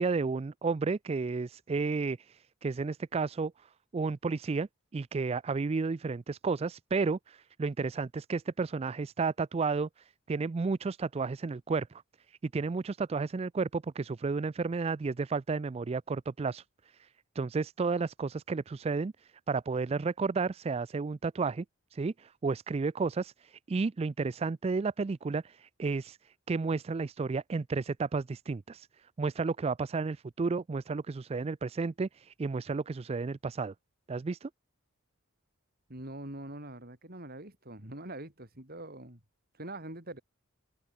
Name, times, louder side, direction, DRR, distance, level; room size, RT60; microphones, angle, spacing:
voice 1, 0.0-3.5 3.9-12.0 12.3-16.6 17.0-17.1 17.4-21.6 21.9-28.9 29.2-33.7 34.1-34.5, right 4 dB, 30° right, 0.3 m, -32 dB
voice 2, 35.9-39.2 39.5-40.2, right 1 dB, 45° right, 5.3 m, -43 dB
open air
head